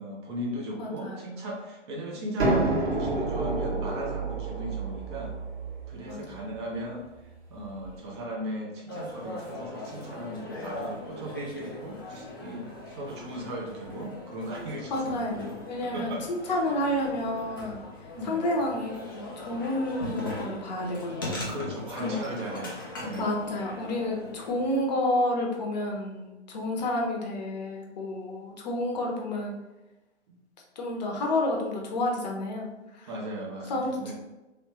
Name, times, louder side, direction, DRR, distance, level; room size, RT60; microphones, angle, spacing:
voice 1, 0.0-5.3 5.9-7.0 7.5-15.2 15.9-16.5 18.1-18.4 21.5-23.3 30.3-30.4 33.1-34.1, right 1 dB, 25° right, -2 dB, 0.6 m, -37 dB
voice 2, 0.8-1.4 6.1-6.6 14.9-17.8 18.2-21.4 22.0-22.2 23.1-29.5 30.8-33.1 33.7-34.1, left 1 dB, 40° left, 0 dB, 0.8 m, -30 dB
sound 1, 2.4-8.0, right 2 dB, 65° right, 1.3 m, -30 dB
sound 2, 8.9-24.8, left 1 dB, 20° left, 0.3 m, -40 dB
3.0 x 3.0 x 3.0 m, 1.0 s
figure-of-eight pair, 120°, 35 cm